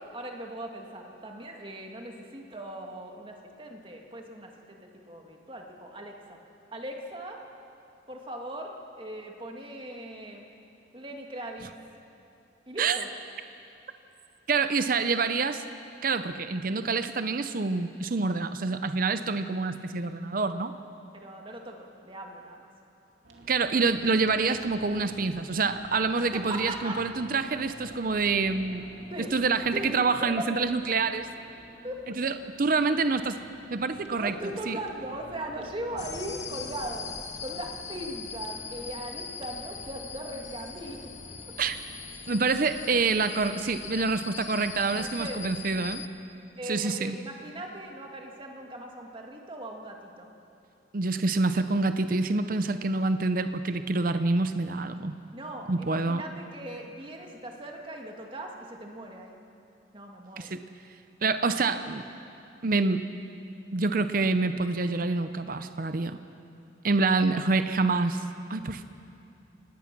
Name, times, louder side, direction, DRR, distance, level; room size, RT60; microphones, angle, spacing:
voice 1, 0.0-6.4 6.7-7.4 8.1-10.5 10.9-11.7 12.7-13.1 21.1-22.7 26.3-27.0 29.1-29.3 29.7-30.4 31.8-32.0 34.2-37.1 37.4-41.0 44.9-45.4 46.6-50.3 55.3-59.4 59.9-60.6 67.2-67.4, right 1 dB, 25° right, 1 dB, 2.0 m, -39 dB
voice 2, 14.5-15.6 16.0-20.7 23.5-28.9 29.2-31.3 32.2-33.4 33.7-34.3 34.7-34.8 41.6-41.8 42.3-46.0 46.7-47.2 50.9-55.1 55.7-56.2 60.4-60.6 61.2-62.1 62.6-63.0 63.7-66.2 66.8-68.2 68.5-68.8, right 3 dB, 45° right, 10 dB, 0.6 m, -27 dB
sound 1, 23.2-42.7, right 1 dB, 80° right, 2.4 m, -50 dB
sound 2, 36.0-46.1, left 6 dB, 40° left, 1.0 m, -41 dB
25.0 x 19.0 x 6.1 m, 2.6 s
head